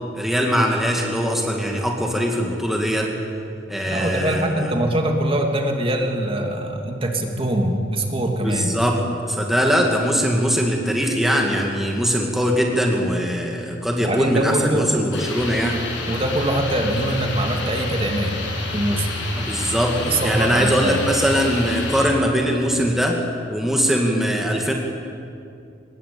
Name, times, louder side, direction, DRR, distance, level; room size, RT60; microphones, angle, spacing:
voice 1, 0.1-3.1 3.7-4.7 8.4-9.0 9.3-15.8 19.4-23.2 23.5-24.7, equal, ahead, 0 dB, 2.3 m, -21 dB
voice 2, 3.9-8.7 14.0-14.9 16.1-18.3 18.7-19.1 20.0-21.0, right 1 dB, 30° right, 2 dB, 2.7 m, -23 dB
sound 1, 15.1-22.1, left 3 dB, 80° left, 7.0 m, -29 dB
24.5 x 21.0 x 8.9 m, 2.5 s
head